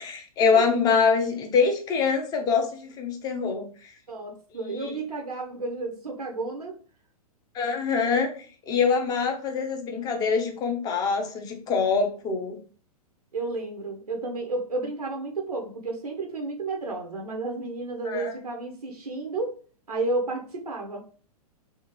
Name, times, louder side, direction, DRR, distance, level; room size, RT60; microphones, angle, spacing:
voice 1, 0.0-3.9 4.6-4.9 7.5-8.3 8.7-12.6 18.1-18.3, left 5 dB, 20° left, 4 dB, 0.6 m, -24 dB
voice 2, 4.1-6.8 13.3-19.5 19.9-21.0, right 3 dB, 85° right, 2 dB, 0.6 m, -32 dB
3.6 x 2.4 x 2.9 m, 0.42 s
figure-of-eight pair, 110°, 19 cm